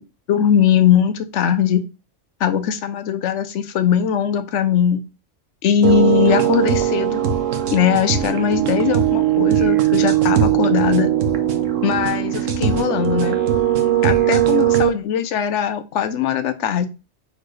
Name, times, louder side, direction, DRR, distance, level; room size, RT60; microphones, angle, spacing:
voice 1, 0.3-1.8 2.4-5.0 5.6-7.2 7.7-11.1 11.8-13.4 14.0-16.9, left 8 dB, 75° left, 9 dB, 0.9 m, -20 dB
sound 1, 5.8-14.9, right 11 dB, 80° right, 1.1 m, -19 dB
4.4 x 3.7 x 3.1 m, 0.31 s
omnidirectional pair, 1.3 m